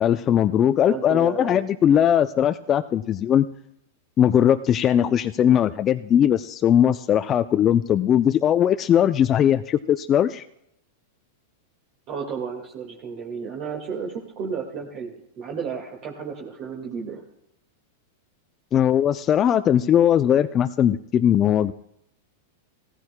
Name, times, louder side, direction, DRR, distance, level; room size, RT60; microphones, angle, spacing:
voice 1, 0.0-3.5 4.2-10.4 18.7-21.7, left 10 dB, 30° left, 10 dB, 0.4 m, -19 dB
voice 2, 0.9-1.6 12.1-17.2, right 6 dB, 45° right, -1 dB, 1.8 m, -33 dB
16.5 x 14.5 x 2.2 m, 0.78 s
hypercardioid pair, 115°, 0 cm